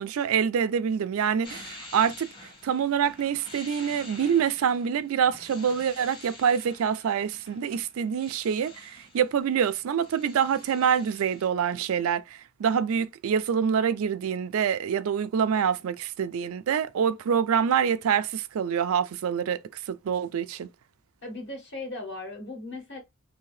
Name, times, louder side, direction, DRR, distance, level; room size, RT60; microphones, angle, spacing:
voice 1, 0.0-2.3 2.6-20.7, right 7 dB, 75° right, 0.3 m, -26 dB
sound 1, 1.4-9.4 9.7-11.5, left 2 dB, 20° left, 1.0 m, -47 dB
voice 2, 21.2-23.0, left 2 dB, 55° left, 1.4 m, -37 dB
2.8 x 2.7 x 3.1 m
head